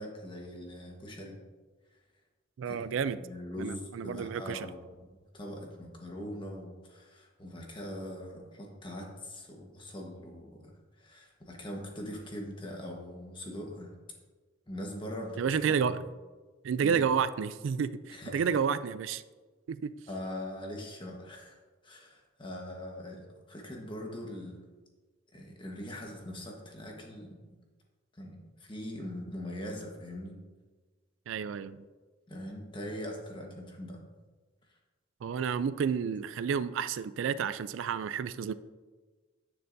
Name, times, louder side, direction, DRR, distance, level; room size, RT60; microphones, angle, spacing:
voice 1, 0.0-1.4 2.7-2.8 3.2-5.0 5.3-10.7 11.0-13.9 14.7-16.0 16.8-17.0 18.1-18.5 20.1-21.6 21.8-24.6 25.3-27.3 28.2-30.4 32.3-34.0, left 1 dB, 25° left, 0 dB, 1.3 m, -41 dB
voice 2, 2.6-3.2 3.6-4.7 15.4-16.0 16.6-19.2 19.7-19.9 31.3-31.8 35.2-38.5, right 6 dB, 75° right, 15 dB, 0.3 m, -30 dB
10.0 x 6.7 x 2.7 m, 1.3 s
head